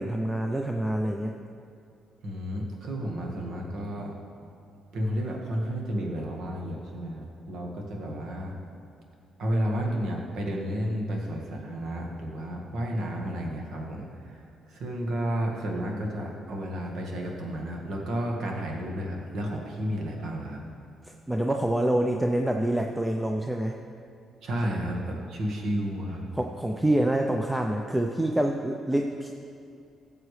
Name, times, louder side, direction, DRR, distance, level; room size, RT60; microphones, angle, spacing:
voice 1, 0.0-1.4 21.0-23.8 26.3-29.3, right 1 dB, 5° right, 3 dB, 0.5 m, -26 dB
voice 2, 2.2-4.1 4.9-8.5 9.4-14.4 14.7-20.6 24.4-26.2, equal, 70° right, 0 dB, 1.6 m, -32 dB
14.0 x 7.4 x 3.3 m, 2.5 s
cardioid pair, 90°, 0 cm